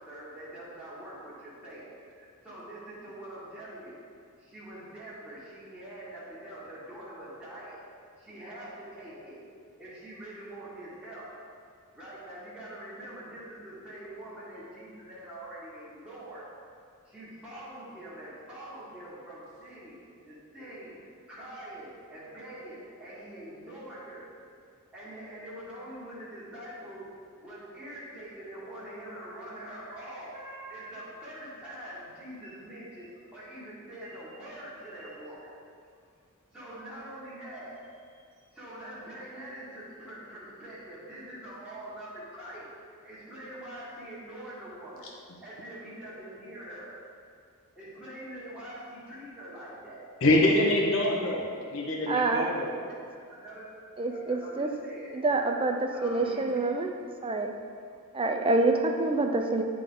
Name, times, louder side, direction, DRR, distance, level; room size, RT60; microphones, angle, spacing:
voice 1, 0.0-4.0 4.4-7.8 8.2-9.4 9.8-11.3 11.9-16.4 17.1-19.9 20.2-21.0 21.3-24.3 24.9-27.0 27.4-35.5 36.5-37.7 38.1-38.2 38.5-45.1 45.4-46.9 47.7-50.0 50.6-50.8 52.1-52.4 52.9-53.0 53.3-53.7 54.0-55.1 55.9-56.7 57.2-57.3, right 1 dB, 5° right, -11 dB, 1.7 m, -44 dB
voice 2, 50.2-51.4 51.7-52.7, left 1 dB, 60° left, -1 dB, 1.1 m, -24 dB
voice 3, 52.1-52.5 54.0-54.7 55.1-56.9 57.2-57.5 58.1-59.6, right 2 dB, 25° right, 4 dB, 0.4 m, -27 dB
11.0 x 3.8 x 3.8 m, 2.2 s
head